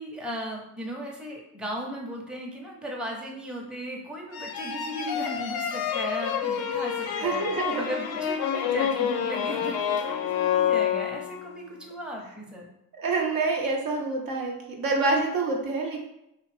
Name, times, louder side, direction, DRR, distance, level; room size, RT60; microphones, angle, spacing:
voice 1, 0.0-7.4 7.8-12.7, equal, ahead, -1 dB, 0.7 m, -36 dB
sound 1, 4.3-11.5, left 8 dB, 60° left, 0.5 m, -28 dB
voice 2, 7.2-7.8 12.9-16.1, right 3 dB, 55° right, 0 dB, 0.7 m, -27 dB
2.6 x 2.4 x 3.2 m, 0.84 s
supercardioid pair, 55°, 44 cm